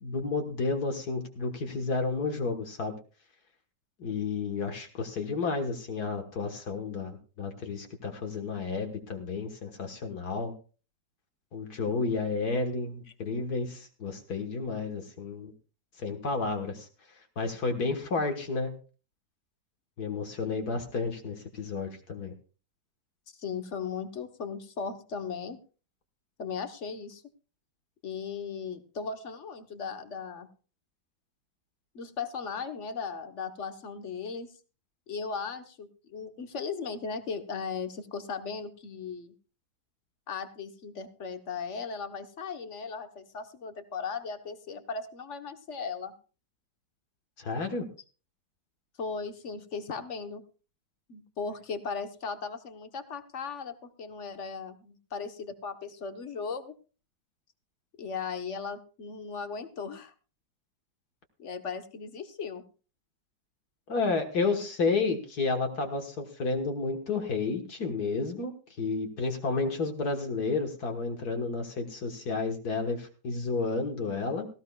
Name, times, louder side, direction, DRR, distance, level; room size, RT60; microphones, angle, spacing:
voice 1, 0.0-3.0 4.0-10.5 11.5-15.5 16.0-16.9 17.4-18.8 20.0-22.3 47.4-47.9 63.9-68.5 68.8-74.5, left 4 dB, 65° left, 4 dB, 2.0 m, -31 dB
voice 2, 23.4-25.6 26.4-27.2 28.0-30.5 31.9-34.5 35.1-39.3 40.3-46.1 49.0-50.4 51.1-56.7 58.0-60.1 61.4-62.6, left 5 dB, 45° left, 8 dB, 1.3 m, -37 dB
18.0 x 16.0 x 2.4 m, 0.36 s
omnidirectional pair, 1.9 m